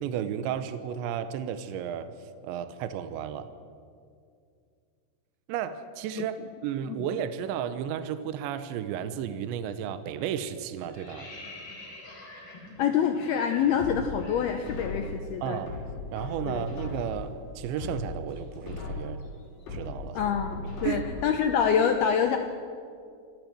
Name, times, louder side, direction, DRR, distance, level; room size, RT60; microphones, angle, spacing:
voice 1, 0.0-2.1 2.4-3.5 5.5-6.4 6.6-11.3 15.4-15.8 16.1-19.2 19.7-20.2 20.8-21.0, right 9 dB, 75° right, 11 dB, 3.1 m, -33 dB
sound 1, 9.6-9.9 10.2-15.2 15.5-15.7 16.0-20.0, left 2 dB, 30° left, 3.9 m, -48 dB
voice 2, 12.8-15.6 16.5-16.7 20.1-22.4, left 7 dB, 75° left, 5 dB, 2.4 m, -26 dB
sound 2, 13.8-15.2 15.7-17.3 17.7-19.2 19.7-21.3 21.7-21.8, left 3 dB, 55° left, 7.6 m, -37 dB
27.5 x 12.5 x 7.7 m, 2.2 s
omnidirectional pair, 5.4 m